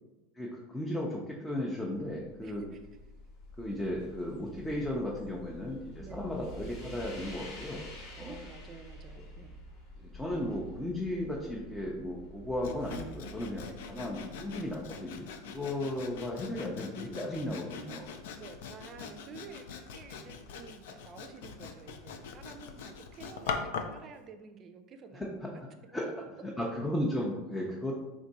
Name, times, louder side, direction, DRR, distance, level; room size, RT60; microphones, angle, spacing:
voice 1, 0.3-2.6 3.6-7.8 8.1-8.4 10.0-18.1 25.1-25.5 25.9-26.1 26.4-27.9, left 1 dB, 10° left, -3 dB, 0.6 m, -35 dB
sound 1, 2.0-15.9, right 1 dB, 55° left, 1.2 m, -49 dB
voice 2, 2.4-2.8 6.0-6.3 8.2-9.6 13.6-13.8 18.4-25.6, right 5 dB, 35° right, 7 dB, 0.5 m, -50 dB
Sawing, 12.6-24.0, left 5 dB, 75° left, 0.4 m, -42 dB
3.6 x 2.5 x 4.1 m, 1.1 s
hypercardioid pair, 100°, 0 cm